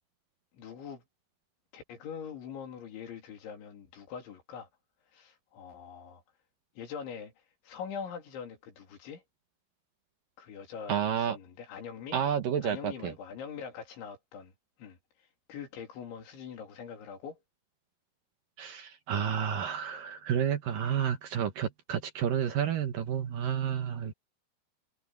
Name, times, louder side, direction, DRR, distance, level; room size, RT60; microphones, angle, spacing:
voice 1, 0.5-1.0 1.7-4.7 5.1-6.2 6.8-7.3 7.6-9.2 10.4-12.2 12.6-14.5 14.8-15.0 15.5-17.4, left 7 dB, 65° left, 5.5 m, -43 dB
voice 2, 10.9-11.4 12.1-13.1 18.6-24.1, right 8 dB, 70° right, 2.1 m, -30 dB
omnidirectional pair, 5.9 m